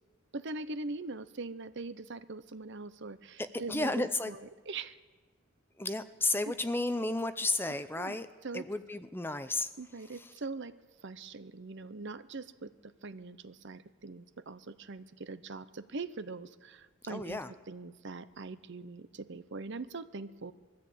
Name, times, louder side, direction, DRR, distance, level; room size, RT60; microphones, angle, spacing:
voice 1, 0.3-5.0 7.9-8.2 8.4-8.7 9.8-10.8 11.0-17.4 17.7-20.5, right 3 dB, 55° right, 14 dB, 0.7 m, -42 dB
voice 2, 3.4-4.3 5.8-8.3 8.5-9.7 10.2-10.3 17.0-17.5, left 2 dB, 10° left, 11 dB, 0.6 m, -33 dB
21.5 x 14.0 x 8.6 m, 1.4 s
head